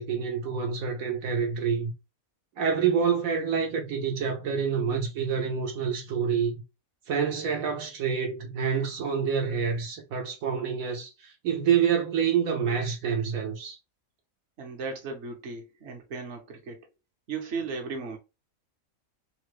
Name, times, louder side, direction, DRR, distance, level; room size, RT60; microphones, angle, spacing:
voice 1, 0.0-1.9 2.6-6.5 7.1-13.8, right 7 dB, 80° right, 1.2 m, -27 dB
voice 2, 14.6-16.9 17.3-18.2, right 4 dB, 55° right, 1.1 m, -36 dB
3.3 x 2.1 x 3.1 m
omnidirectional pair, 1.5 m